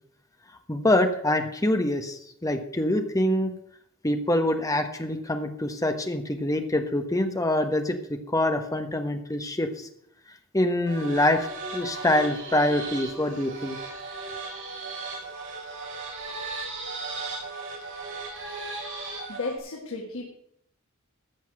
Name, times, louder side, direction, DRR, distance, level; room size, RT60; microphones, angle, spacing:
voice 1, 0.7-3.5 4.0-9.9 10.5-13.8, left 1 dB, 15° left, 6 dB, 1.3 m, -25 dB
sound 1, 10.9-19.6, right 3 dB, 60° right, 4.3 m, -36 dB
voice 2, 19.3-20.3, left 3 dB, 75° left, 0 dB, 2.1 m, -33 dB
14.5 x 5.9 x 7.8 m, 0.72 s
head